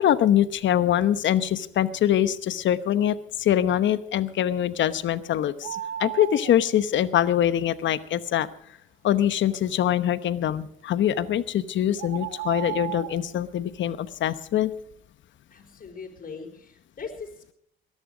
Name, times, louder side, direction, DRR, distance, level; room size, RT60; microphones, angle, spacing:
voice 1, 0.0-8.5 9.0-14.7, left 11 dB, 70° left, 14 dB, 1.0 m, -23 dB
sound 1, 5.6-6.5 11.1-11.3 12.0-13.2, right 14 dB, 85° right, 1.0 m, -34 dB
voice 2, 15.5-17.5, left 5 dB, 45° left, 2 dB, 5.0 m, -40 dB
20.0 x 11.0 x 5.1 m, 0.67 s
cardioid pair, 90°, 20 cm